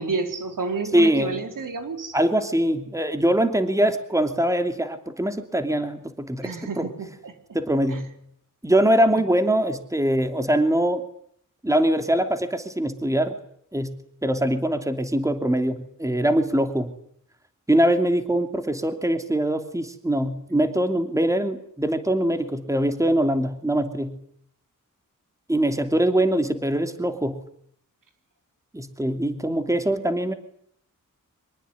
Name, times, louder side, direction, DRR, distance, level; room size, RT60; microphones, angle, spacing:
voice 1, 0.0-2.2 6.4-7.3 7.9-8.0 9.1-9.2, right 4 dB, 80° right, 6 dB, 4.2 m, -30 dB
voice 2, 0.9-1.4 2.1-6.9 7.5-8.0 8.6-11.0 11.6-13.3 13.7-13.9 14.2-16.9 17.7-24.2 25.5-27.4 28.7-30.3, right 1 dB, 10° right, 7 dB, 2.9 m, -23 dB
24.5 x 22.0 x 9.6 m, 0.67 s
wide cardioid pair, 115°, 32 cm